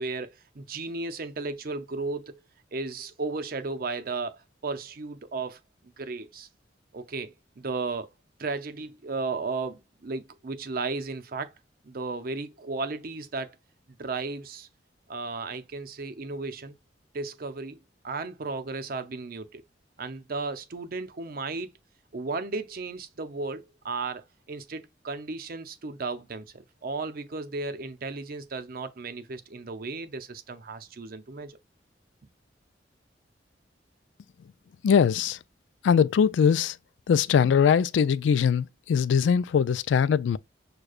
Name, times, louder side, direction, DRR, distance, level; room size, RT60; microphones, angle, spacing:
voice 1, 0.0-2.4 2.7-5.6 6.0-6.5 6.9-8.1 8.4-11.5 11.8-13.6 14.0-14.7 15.1-16.8 17.1-17.8 18.0-19.6 20.0-21.7 22.1-31.6, right 3 dB, 55° right, 0.6 m, -34 dB
voice 2, 34.8-35.4 35.8-36.8 37.1-40.4, left 7 dB, 90° left, 0.3 m, -21 dB
6.4 x 2.2 x 2.3 m
head